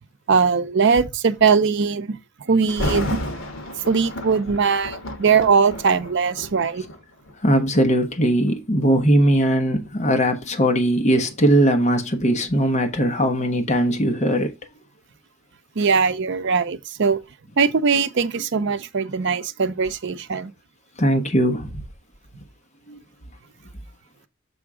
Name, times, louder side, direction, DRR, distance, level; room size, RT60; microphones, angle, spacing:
voice 1, 0.3-2.2 2.5-3.2 3.9-6.8 15.8-17.2 17.6-20.5, right 5 dB, 60° right, 0.6 m, -20 dB
Thunder, 2.7-7.7 8.3-8.5 9.2-12.0 12.3-12.4, left 1 dB, 75° left, 1.4 m, -32 dB
voice 2, 7.4-14.5 21.0-21.8 22.9-23.0, equal, 35° left, 1.0 m, -19 dB
7.0 x 3.7 x 4.8 m
head